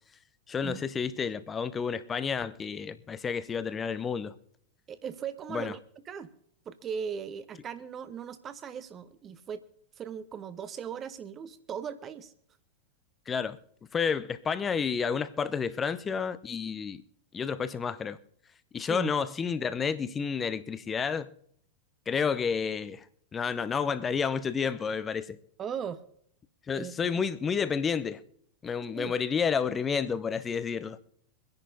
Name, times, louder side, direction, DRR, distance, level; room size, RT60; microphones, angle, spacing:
voice 1, 0.5-4.4 5.5-5.7 13.3-13.6 13.9-17.0 17.3-18.2 18.7-21.3 22.1-23.1 23.3-25.4 26.7-28.2 28.6-31.0, left 6 dB, 20° left, 0.7 m, -30 dB
voice 2, 4.9-6.3 6.7-9.6 10.0-12.3 18.9-19.1 22.1-22.3 25.6-26.0 26.7-27.2 29.0-29.1, right 7 dB, 25° right, 0.9 m, -38 dB
24.5 x 10.5 x 2.7 m
figure-of-eight pair, 90°, 0 cm